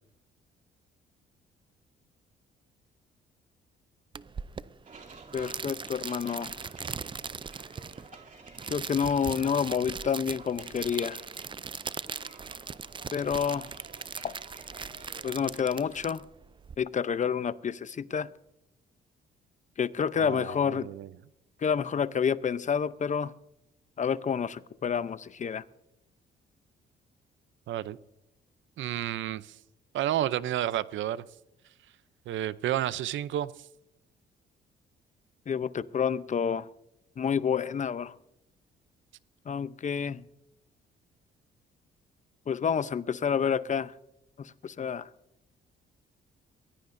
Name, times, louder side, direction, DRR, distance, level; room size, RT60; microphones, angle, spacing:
sound 1, 4.1-16.8, right 5 dB, 25° right, 0.5 m, -40 dB
sound 2, 4.8-16.0, right 4 dB, 40° right, 3.0 m, -51 dB
voice 1, 5.3-6.5 8.7-11.2 13.1-13.7 14.2-14.3 15.2-16.2 16.8-18.3 19.8-20.9 21.6-23.3 24.0-25.6 35.5-36.7 37.2-38.1 39.5-40.2 42.5-43.9 44.4-45.1, left 7 dB, 40° left, 0.7 m, -29 dB
voice 2, 20.2-21.1 27.7-28.0 28.8-29.5 29.9-31.2 32.3-33.5, right 12 dB, 75° right, 0.6 m, -31 dB
23.0 x 16.0 x 2.6 m
cardioid pair, 90°, 20 cm